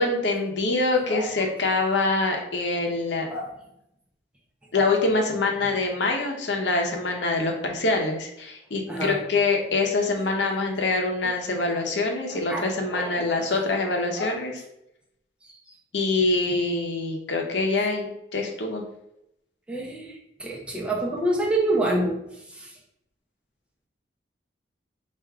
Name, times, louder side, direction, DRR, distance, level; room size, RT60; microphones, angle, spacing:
voice 1, 0.0-3.3 4.7-14.6 15.9-18.8, left 3 dB, 85° left, 2 dB, 0.8 m, -25 dB
voice 2, 12.3-13.5 14.2-14.3 19.7-22.2 22.5-22.7, right 1 dB, 5° right, -3 dB, 0.8 m, -27 dB
3.5 x 2.5 x 4.6 m, 0.82 s
head